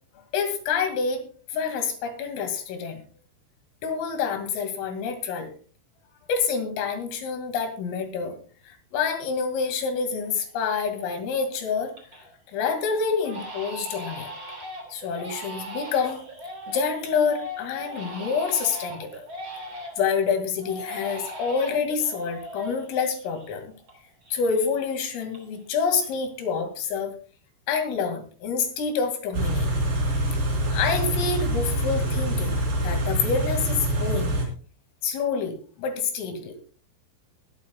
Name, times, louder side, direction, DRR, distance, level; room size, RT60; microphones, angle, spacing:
voice 1, 0.3-1.2 1.5-3.0 3.8-5.5 6.3-8.3 8.7-11.9 12.5-14.3 14.9-16.2 16.7-19.2 20.0-23.7 24.3-27.1 27.7-29.7 30.7-34.4 35.0-36.6, left 5 dB, 85° left, 6 dB, 4.7 m, -27 dB
Crying sobbing, 10.0-10.1 10.6-11.1 11.5-12.3 12.6-12.8 13.2-20.1 20.6-23.9 24.2-25.7 26.0-26.5, equal, 30° right, 3.8 m, -39 dB
Car / Idling, 29.3-34.5, right 1 dB, 45° right, 5.3 m, -25 dB
20.5 x 13.0 x 2.3 m, 0.40 s
omnidirectional pair, 5.7 m